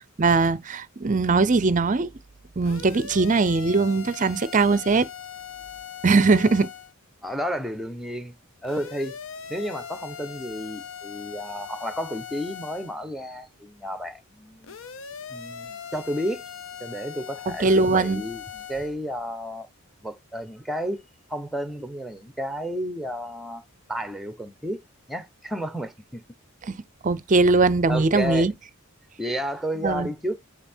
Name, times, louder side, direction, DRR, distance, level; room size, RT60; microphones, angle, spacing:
voice 1, 0.2-2.1 2.6-5.1 6.0-6.7 17.5-18.2 26.7-28.5 29.8-30.1, right 3 dB, 35° right, 0.5 m, -21 dB
sound 1, 2.6-6.9 8.6-13.0 14.6-18.9, left 7 dB, 60° left, 0.7 m, -40 dB
voice 2, 7.2-8.4 8.6-9.2 9.5-14.8 15.3-16.4 16.8-19.7 20.0-21.0 21.3-24.8 25.1-26.2 27.9-28.5 29.2-30.3, equal, ahead, 0.9 m, -32 dB
5.7 x 4.1 x 4.4 m
head